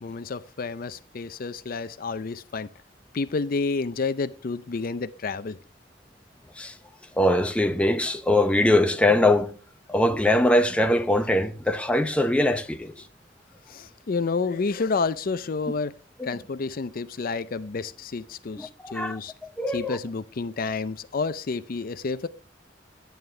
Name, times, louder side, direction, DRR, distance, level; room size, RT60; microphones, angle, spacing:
voice 1, 0.0-2.7 3.1-5.6 13.7-15.9 16.2-19.3 19.7-22.3, left 4 dB, 50° left, 0.5 m, -30 dB
voice 2, 7.2-9.5 9.9-12.9 16.2-16.3 18.6-19.2 19.6-20.0, left 1 dB, 5° left, 0.7 m, -22 dB
11.0 x 9.3 x 3.3 m
head